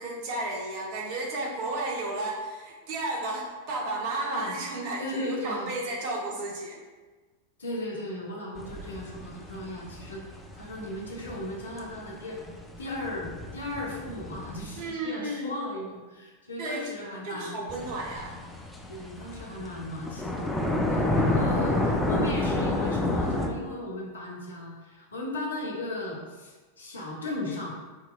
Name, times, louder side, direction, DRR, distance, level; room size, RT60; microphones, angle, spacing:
voice 1, 0.0-6.8 14.8-15.5 16.6-16.9 17.2-18.4, right 2 dB, 45° right, -1 dB, 0.8 m, -33 dB
voice 2, 5.0-5.7 7.6-12.4 12.8-17.6 18.9-20.5 20.9-27.7, left 1 dB, 70° left, -3 dB, 0.8 m, -36 dB
sound 1, 8.6-14.9 17.7-23.5, left 2 dB, 10° left, 0.4 m, -30 dB
4.6 x 2.9 x 2.3 m, 1.3 s
figure-of-eight pair, 90°, 0 cm